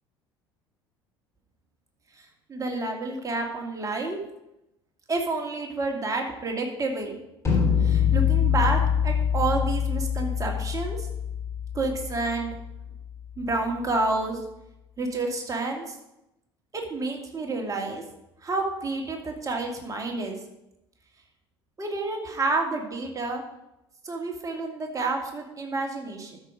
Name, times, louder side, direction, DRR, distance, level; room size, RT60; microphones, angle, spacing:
voice 1, 2.5-4.2 5.1-7.2 7.8-11.1 11.7-12.5 13.4-14.4 15.0-16.0 16.7-18.0 18.4-20.4 21.8-23.4 24.0-26.4, right 3 dB, 25° right, 2 dB, 2.2 m, -29 dB
sound 1, 7.4-13.4, left 8 dB, 20° left, 4.0 m, -25 dB
12.5 x 4.9 x 5.0 m, 0.88 s
figure-of-eight pair, 60°, 13 cm